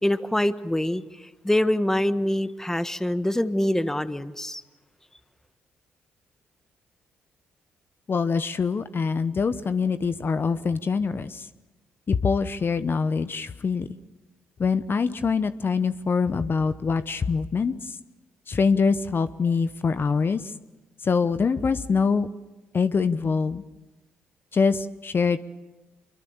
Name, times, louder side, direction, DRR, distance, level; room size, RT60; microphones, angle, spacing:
voice 1, 0.0-4.6, left 1 dB, 10° left, 12 dB, 1.3 m, -25 dB
voice 2, 8.1-11.5 12.1-13.9 14.6-17.9 18.5-20.4 21.0-22.3 22.7-23.6 24.5-25.4, left 5 dB, 45° left, 12 dB, 0.9 m, -24 dB
26.5 x 22.5 x 7.2 m, 1.1 s
hypercardioid pair, 45°, 5 cm